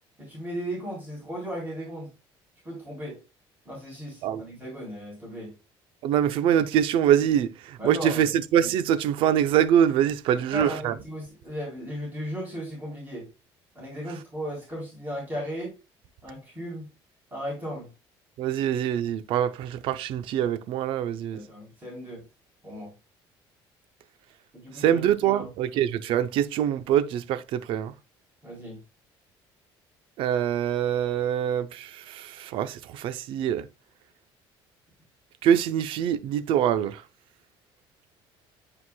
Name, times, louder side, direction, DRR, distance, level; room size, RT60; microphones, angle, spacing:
voice 1, 0.2-2.1 2.6-3.2 3.7-5.5 7.8-8.3 10.3-13.3 13.8-15.8 16.2-16.9 17.3-17.9 21.3-22.2 22.6-22.9 24.5-25.5 28.4-28.8, equal, 20° right, 3.8 m, -36 dB
voice 2, 6.0-10.9 18.4-21.4 24.7-27.9 30.2-33.7 35.4-37.0, right 10 dB, 65° right, 0.6 m, -24 dB
9.5 x 4.8 x 2.2 m
cardioid pair, 155°, 10 cm